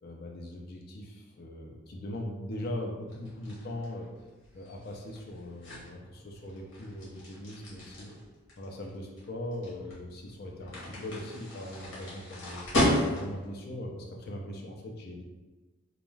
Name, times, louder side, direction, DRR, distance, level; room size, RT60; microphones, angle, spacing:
voice 1, 0.0-4.1 4.5-8.2 8.6-12.6 13.1-15.2, left 1 dB, 50° left, 0 dB, 0.4 m, -40 dB
sound 1, 3.1-13.5, left 1 dB, 65° left, 1.0 m, -34 dB
2.3 x 2.2 x 3.2 m, 1.2 s
head